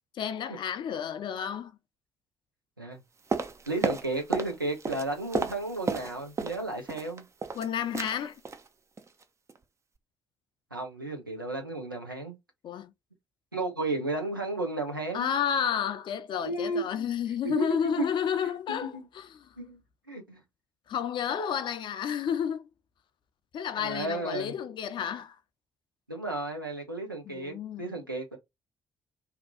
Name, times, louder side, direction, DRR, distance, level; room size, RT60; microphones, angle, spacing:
voice 1, 0.1-1.7 7.5-8.4 12.6-12.9 15.1-19.6 20.9-22.7 23.5-25.4 27.2-27.9, left 8 dB, 45° left, 0.5 m, -31 dB
sound 1, 3.3-4.6 4.8-6.6 6.9-7.7 7.9-8.2 8.5-8.7 9.0-9.2 9.5-9.6, right 4 dB, 25° right, 0.5 m, -32 dB
voice 2, 3.7-7.2 10.7-12.4 13.5-15.3 16.4-17.1 17.4-18.1 18.7-18.8 19.6-19.8 20.1-20.4 23.8-24.5 26.1-28.4, right 2 dB, 90° right, 0.6 m, -33 dB
2.7 x 2.3 x 3.8 m
figure-of-eight pair, 45°, 11 cm